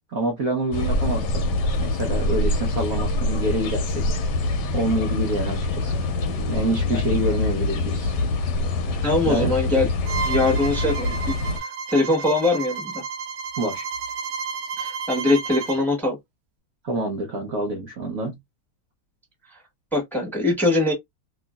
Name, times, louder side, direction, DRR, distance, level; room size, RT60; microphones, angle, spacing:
voice 1, 0.1-1.4 1.8-4.1 4.7-5.9 6.5-8.1 9.3-9.5 13.6-13.8 16.8-18.4, right 1 dB, 55° right, 1.0 m, -27 dB
sound 1, 0.7-11.6, left 2 dB, 65° left, 1.2 m, -25 dB
voice 2, 9.0-9.9 10.2-13.0 14.8-16.2 19.9-20.9, left 2 dB, ahead, 1.3 m, -22 dB
Bowed string instrument, 10.1-15.8, right 5 dB, 80° right, 1.5 m, -32 dB
3.1 x 3.0 x 2.3 m
omnidirectional pair, 2.2 m